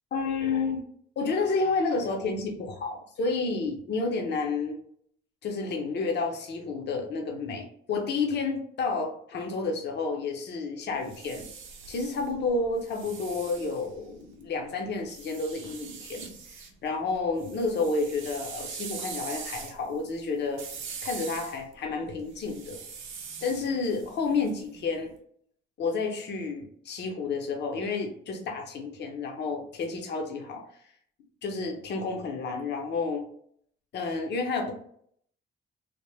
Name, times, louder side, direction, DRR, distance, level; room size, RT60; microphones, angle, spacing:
voice 1, 0.1-0.8 1.2-4.8 5.4-11.5 11.9-16.6 16.8-20.6 21.0-22.8 23.4-25.1 25.8-30.6 31.4-33.3 33.9-34.7, left 4 dB, 60° left, 3 dB, 0.7 m, -30 dB
sound 1, 10.9-14.4 15.1-16.7 17.1-25.0, right 6 dB, 85° right, 0.6 m, -42 dB
3.2 x 2.1 x 3.2 m, 0.64 s
cardioid pair, 90°, 20 cm